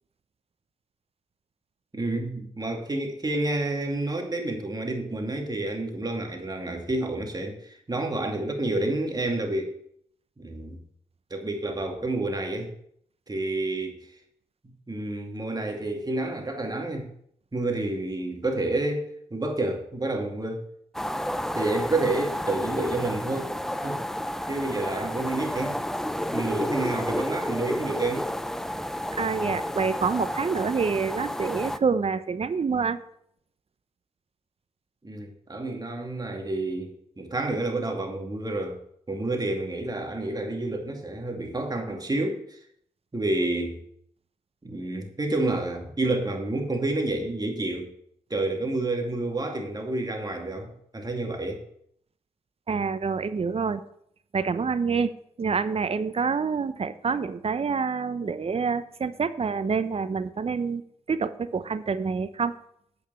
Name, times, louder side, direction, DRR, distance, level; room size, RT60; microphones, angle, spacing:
voice 1, 1.9-9.7 10.4-10.8 11.3-12.7 13.3-14.0 14.9-17.1 17.5-20.6 21.5-23.4 23.8-24.0 24.5-25.8 26.2-28.3 35.0-38.8 39.1-42.6 43.1-43.8 44.6-47.9 48.3-51.6, right 2 dB, 30° right, 2 dB, 2.5 m, -29 dB
sound 1, 20.9-31.8, left 1 dB, 5° left, 0.6 m, -31 dB
voice 2, 29.1-33.0 52.7-53.8 54.3-55.1 55.4-60.8 61.1-62.5, right 5 dB, 45° right, 13 dB, 0.8 m, -27 dB
8.7 x 5.3 x 7.0 m, 0.69 s
supercardioid pair, 40°, 14 cm